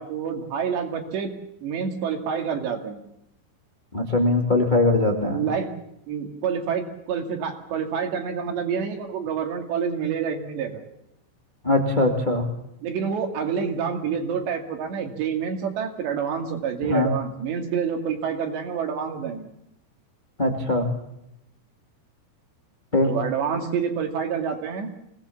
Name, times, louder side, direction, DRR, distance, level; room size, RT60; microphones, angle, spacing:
voice 1, 0.0-1.3 1.6-3.0 5.3-5.7 6.1-10.8 12.8-19.5 23.1-24.9, right 7 dB, 70° right, 4 dB, 4.4 m, -28 dB
voice 2, 3.9-5.4 11.6-12.5 16.8-17.1 20.4-20.9 22.9-23.1, left 2 dB, 25° left, 2 dB, 0.9 m, -21 dB
25.0 x 18.5 x 7.2 m, 0.81 s
omnidirectional pair, 5.4 m